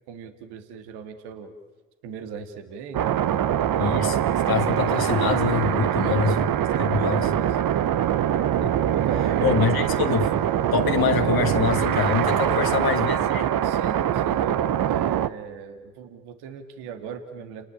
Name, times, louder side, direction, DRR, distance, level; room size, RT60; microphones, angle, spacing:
voice 1, 0.1-1.5 2.0-3.4 6.0-6.5 7.0-7.6 8.9-9.9 12.4-12.8 13.6-17.7, right 7 dB, 80° right, 2.1 m, -38 dB
sound 1, 2.9-15.3, right 10 dB, 60° right, 1.0 m, -23 dB
voice 2, 3.8-6.4 6.8-7.3 8.6-8.7 9.4-10.3 10.7-13.5, left 6 dB, 65° left, 2.1 m, -25 dB
30.0 x 19.0 x 10.0 m
hypercardioid pair, 40°, 39 cm